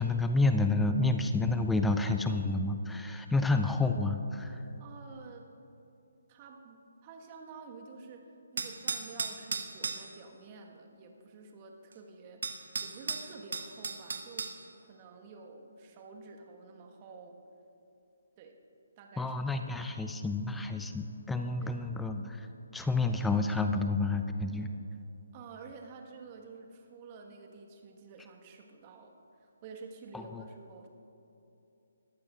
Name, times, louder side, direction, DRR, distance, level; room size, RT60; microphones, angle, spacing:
voice 1, 0.0-4.6 19.2-22.5 22.7-24.7 30.1-30.4, left 3 dB, 5° left, 6 dB, 0.5 m, -29 dB
voice 2, 4.8-5.5 6.3-12.4 12.8-14.5 14.8-17.4 18.4-18.6 19.0-19.3 21.6-21.8 25.3-29.1 29.4-30.9, right 4 dB, 30° right, 2 dB, 1.4 m, -50 dB
sound 1, 8.6-10.1 11.9-12.0 12.4-14.6, right 5 dB, 60° right, 1.0 m, -35 dB
21.5 x 14.5 x 2.4 m, 2.9 s
figure-of-eight pair, 140°, 0 cm